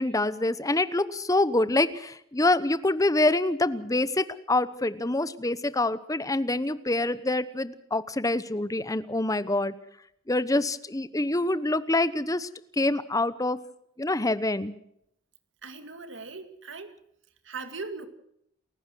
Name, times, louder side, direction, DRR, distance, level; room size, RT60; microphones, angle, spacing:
voice 1, 0.0-9.7 10.3-12.5 12.8-13.6 14.0-14.7, left 2 dB, 15° left, 14 dB, 1.0 m, -26 dB
voice 2, 15.6-17.0 17.4-18.1, right 4 dB, 70° right, 8 dB, 2.3 m, -39 dB
29.0 x 15.0 x 6.3 m, 0.72 s
head